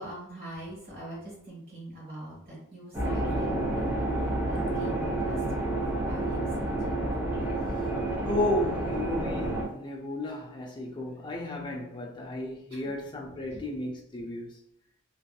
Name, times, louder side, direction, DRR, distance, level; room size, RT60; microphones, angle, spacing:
voice 1, 0.0-3.9 4.2-5.4 6.0-6.9 12.7-13.0 13.5-13.7, right 1 dB, 40° right, 1.4 m, -43 dB
sound 1, 2.9-9.6, right 1 dB, 10° right, 0.8 m, -29 dB
voice 2, 8.2-14.5, left 2 dB, 20° left, 0.4 m, -33 dB
2.6 x 2.6 x 2.3 m
head